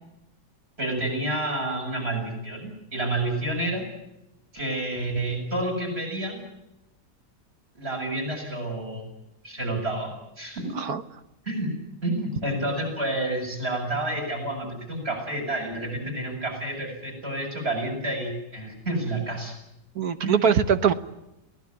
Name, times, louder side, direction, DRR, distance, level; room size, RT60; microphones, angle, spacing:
voice 1, 0.8-3.8 4.5-6.4 7.7-9.1 9.4-10.1 10.4-10.8 11.4-11.7 12.0-19.5 20.2-20.4, right 1 dB, 35° right, 1 dB, 8.0 m, -29 dB
voice 2, 19.9-20.9, right 7 dB, 60° right, 11 dB, 1.6 m, -22 dB
23.0 x 18.5 x 9.7 m, 0.91 s
omnidirectional pair, 1.9 m